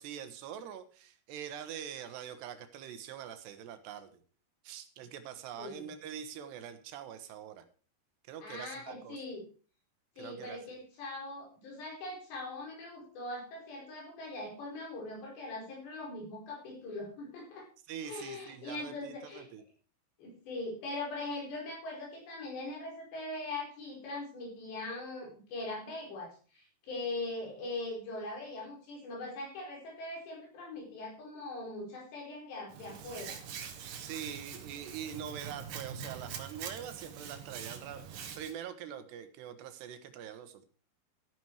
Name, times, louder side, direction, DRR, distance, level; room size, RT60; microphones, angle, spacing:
voice 1, 0.0-4.1 4.6-7.6 8.3-9.2 10.2-10.6 17.9-19.6 34.0-40.7, right 9 dB, 75° right, 10 dB, 3.2 m, -44 dB
voice 2, 5.6-5.9 8.4-9.4 10.2-17.7 18.0-19.5 20.2-33.4, left 2 dB, 75° left, -1 dB, 7.0 m, -41 dB
Hands, 32.7-38.5, right 7 dB, 60° right, 2.9 m, -44 dB
13.5 x 10.0 x 4.8 m, 0.39 s
omnidirectional pair, 5.0 m